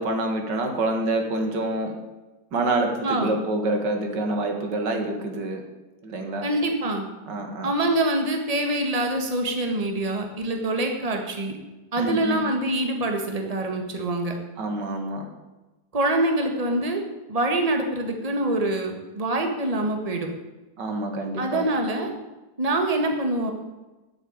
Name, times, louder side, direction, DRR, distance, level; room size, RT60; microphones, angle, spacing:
voice 1, 0.0-1.9 2.5-5.6 6.0-6.5 7.3-7.7 12.0-12.4 14.6-15.3 20.8-21.7, right 2 dB, 85° right, 4 dB, 2.4 m, -27 dB
voice 2, 6.4-7.1 7.6-11.6 11.9-14.3 15.9-17.0 17.3-20.3 21.4-22.1 22.6-23.5, right 1 dB, 20° right, 3 dB, 1.7 m, -25 dB
10.5 x 7.8 x 8.9 m, 1.1 s
omnidirectional pair, 1.8 m